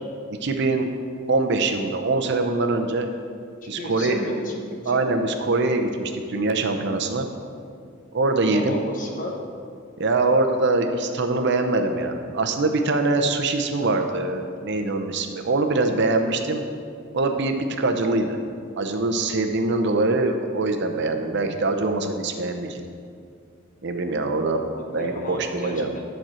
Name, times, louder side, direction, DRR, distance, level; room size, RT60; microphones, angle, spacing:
voice 1, 0.3-0.9 1.3-3.1 3.7-4.2 4.9-7.3 8.1-8.8 10.0-16.6 17.1-18.4 18.8-22.8 23.8-24.6 24.9-25.9, right 2 dB, 55° right, 5 dB, 0.7 m, -23 dB
voice 2, 3.6-5.0 8.5-9.3 24.4-26.0, left 1 dB, 40° left, 1 dB, 1.1 m, -33 dB
10.5 x 4.4 x 6.2 m, 2.3 s
head